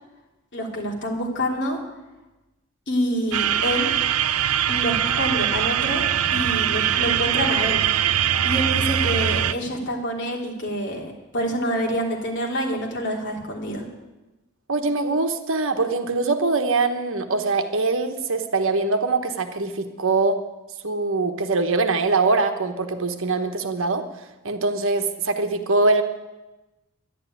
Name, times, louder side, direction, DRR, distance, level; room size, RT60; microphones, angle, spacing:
voice 1, 0.5-1.8 2.9-3.9 4.7-7.8 8.4-11.0 11.3-13.8, equal, 55° left, 0 dB, 3.1 m, -27 dB
sound 1, 3.3-9.5, right 10 dB, 85° right, 0.6 m, -22 dB
voice 2, 14.7-20.4 20.8-24.0 24.4-26.0, right 3 dB, 65° right, 7 dB, 1.3 m, -23 dB
11.5 x 11.0 x 9.4 m, 1.1 s
head